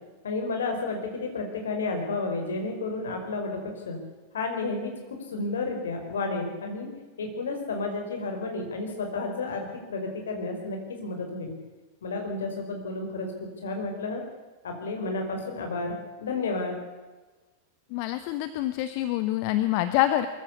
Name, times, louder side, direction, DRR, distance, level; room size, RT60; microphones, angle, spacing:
voice 1, 0.2-4.0 4.3-6.9 7.2-11.5 12.0-14.2 14.6-16.7, left 3 dB, 65° left, 3 dB, 5.1 m, -31 dB
voice 2, 17.9-20.3, left 14 dB, 45° left, 11 dB, 1.1 m, -26 dB
23.0 x 15.0 x 8.5 m, 1.2 s
figure-of-eight pair, 90°, 0 cm